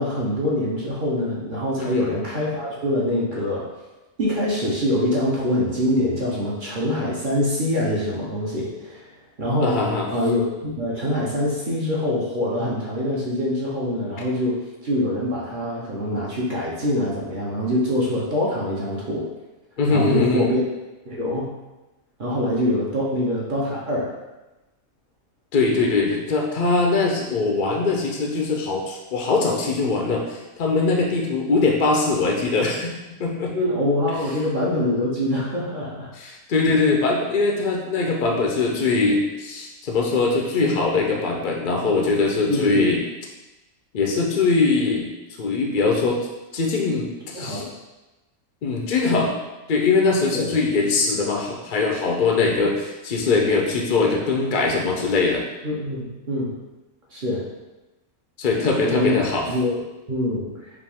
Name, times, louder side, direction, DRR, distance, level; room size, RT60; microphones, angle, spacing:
voice 1, 0.0-3.6 4.2-9.1 9.4-19.3 19.9-20.6 21.1-21.5 22.2-24.1 33.5-36.1 36.7-36.8 42.5-42.8 47.3-47.7 50.3-50.5 55.6-56.6 57.1-57.4 58.8-59.2 59.5-59.8 60.1-60.5, left 1 dB, 45° right, -5 dB, 0.9 m, -24 dB
voice 2, 9.6-10.1 19.8-20.5 25.5-32.9 33.2-33.5 36.1-43.0 43.9-45.1 45.4-46.2 46.5-47.7 48.6-49.3 49.7-55.4 58.4-59.5, left 3 dB, 60° left, 0 dB, 0.5 m, -21 dB
5.1 x 2.5 x 3.4 m, 1.1 s
omnidirectional pair, 1.5 m